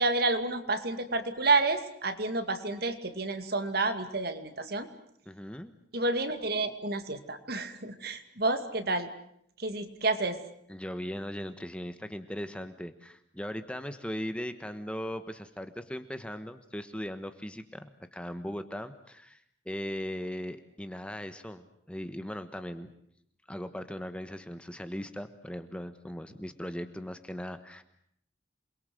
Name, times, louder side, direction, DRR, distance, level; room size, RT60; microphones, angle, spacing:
voice 1, 0.0-4.9 5.9-9.1 9.6-10.4, right 3 dB, 55° right, 9 dB, 2.3 m, -29 dB
voice 2, 5.3-5.7 10.7-22.9 23.5-27.8, equal, 5° left, 9 dB, 1.2 m, -39 dB
28.0 x 22.0 x 7.7 m, 0.70 s
head